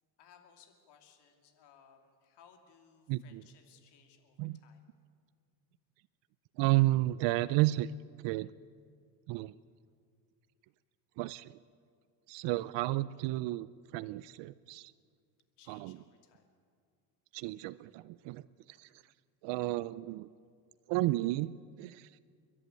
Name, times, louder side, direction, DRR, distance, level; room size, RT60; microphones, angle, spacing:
voice 1, 0.2-4.8 15.6-16.4 18.9-19.2, left 7 dB, 65° left, 4 dB, 2.8 m, -62 dB
voice 2, 3.1-3.4 4.4-4.6 6.6-7.9 8.2-8.5 9.3-9.6 11.2-11.5 12.3-14.9 15.7-15.9 17.3-19.0 19.4-20.3 20.9-22.2, right 18 dB, 75° right, 16 dB, 0.6 m, -32 dB
30.0 x 11.0 x 9.0 m, 2.1 s
cardioid pair, 130°, 43 cm